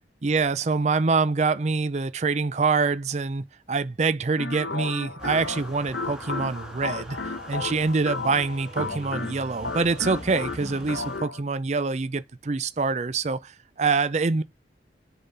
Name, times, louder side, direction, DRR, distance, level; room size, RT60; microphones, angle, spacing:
voice 1, 0.2-7.2 7.5-14.4, right 4 dB, 40° right, 0.5 m, -25 dB
sound 1, 4.4-11.4, left 3 dB, 80° left, 1.0 m, -34 dB
sound 2, 5.2-11.2, right 1 dB, 5° right, 1.7 m, -42 dB
7.1 x 3.8 x 5.5 m
head